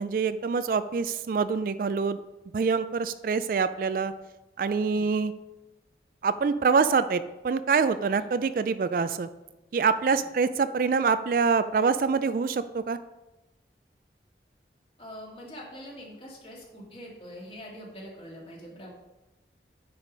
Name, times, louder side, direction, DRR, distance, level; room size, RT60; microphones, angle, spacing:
voice 1, 0.0-2.2 2.5-4.1 4.6-5.3 6.2-9.3 9.7-13.0, right 5 dB, 50° right, 13 dB, 0.3 m, -25 dB
voice 2, 15.0-18.9, equal, 30° left, -2 dB, 2.0 m, -44 dB
9.6 x 4.9 x 5.1 m, 1.0 s
head